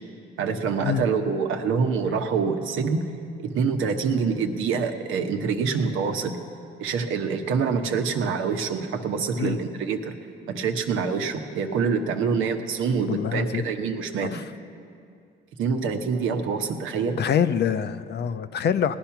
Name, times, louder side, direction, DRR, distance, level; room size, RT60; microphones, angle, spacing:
voice 1, 0.4-3.0 3.4-6.4 6.8-10.1 10.5-14.4 15.6-17.2, right 5 dB, 85° right, 5 dB, 1.1 m, -26 dB
voice 2, 13.1-13.6 14.2-14.4 17.2-19.0, left 8 dB, 60° left, 12 dB, 0.6 m, -25 dB
18.0 x 10.0 x 5.8 m, 2.4 s
cardioid pair, 90°, 20 cm